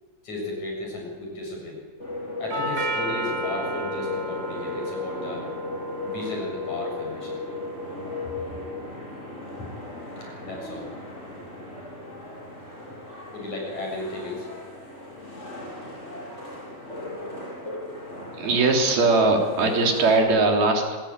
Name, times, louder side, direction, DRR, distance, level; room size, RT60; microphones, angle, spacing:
voice 1, 0.2-1.8 2.4-5.5 6.0-7.4 9.5-9.7 10.2-10.9 13.3-14.5 19.6-19.7, left 2 dB, 50° left, 0 dB, 8.6 m, -34 dB
sound 1, 2.0-20.2, left 2 dB, 15° left, 8.4 m, -36 dB
Doorbell, 2.5-10.6, right 2 dB, 45° right, 2.3 m, -36 dB
voice 2, 18.3-21.0, right 3 dB, 85° right, 2 dB, 5.4 m, -20 dB
26.0 x 20.5 x 9.1 m, 1.5 s
omnidirectional pair, 4.2 m